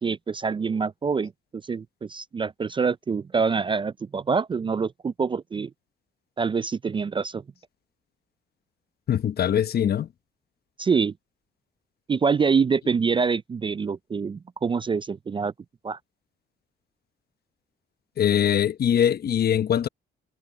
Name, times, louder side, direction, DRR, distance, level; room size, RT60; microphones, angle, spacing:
voice 1, 0.0-5.7 6.4-7.4 10.8-11.1 12.1-15.5 15.8-16.0, right 5 dB, 25° right, 0.4 m, -25 dB
voice 2, 9.1-10.1 18.2-19.9, left 9 dB, 50° left, 0.9 m, -22 dB
cardioid pair, 90°, 20 cm